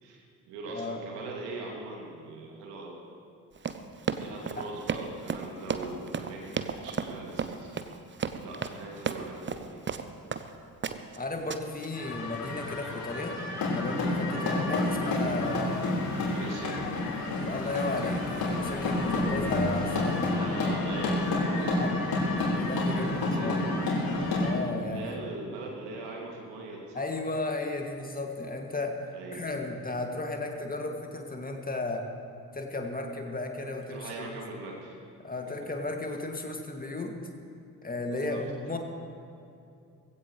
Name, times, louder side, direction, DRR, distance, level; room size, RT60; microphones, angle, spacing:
voice 1, 0.0-3.0 4.0-7.8 8.4-9.8 13.2-13.3 14.2-14.4 16.3-16.8 20.4-21.9 22.9-23.8 24.2-24.3 24.9-27.0 29.1-29.5 33.9-35.0 35.4-35.5 38.1-38.4, right 2 dB, 65° right, -1 dB, 2.6 m, -41 dB
voice 2, 0.7-1.0 4.5-4.6 11.2-13.4 13.7-15.9 17.3-20.2 21.8-21.9 22.5-23.6 24.3-25.2 26.9-29.0 29.3-32.0 32.5-34.3 35.2-37.1 37.8-38.8, left 2 dB, 20° left, 2 dB, 2.2 m, -34 dB
Run, 3.6-10.5 10.8-11.2 11.5-11.9, right 6 dB, 25° right, 0.8 m, -33 dB
sound 1, 11.9-24.5, left 2 dB, 50° left, 4.1 m, -29 dB
19.5 x 16.0 x 3.2 m, 2.5 s
figure-of-eight pair, 45°, 45 cm